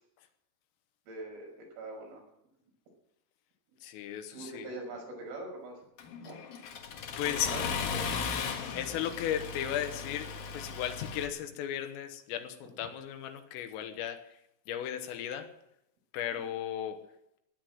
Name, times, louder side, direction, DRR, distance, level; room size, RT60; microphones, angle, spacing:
voice 1, 1.1-2.2 4.3-5.8 6.2-6.4 7.2-7.6 7.9-8.2 16.4-16.5, right 2 dB, 80° right, 0 dB, 8.4 m, -43 dB
voice 2, 3.8-4.7 7.2-7.5 8.7-14.4 14.7-15.6 16.1-17.4, left 10 dB, 80° left, 7 dB, 3.8 m, -36 dB
Accelerating revving vroom, 6.0-11.3, left 6 dB, 60° left, 2.7 m, -37 dB
18.0 x 10.5 x 7.7 m, 0.80 s
omnidirectional pair, 5.9 m